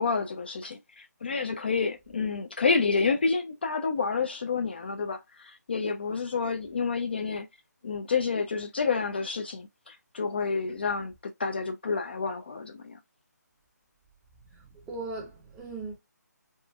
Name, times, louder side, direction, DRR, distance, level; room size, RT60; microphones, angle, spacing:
voice 1, 0.0-7.5 7.8-13.0, left 4 dB, 35° left, 0.3 m, -29 dB
voice 2, 14.6-15.9, right 3 dB, 5° right, 0.6 m, -38 dB
4.0 x 3.5 x 2.2 m
figure-of-eight pair, 150°, 10 cm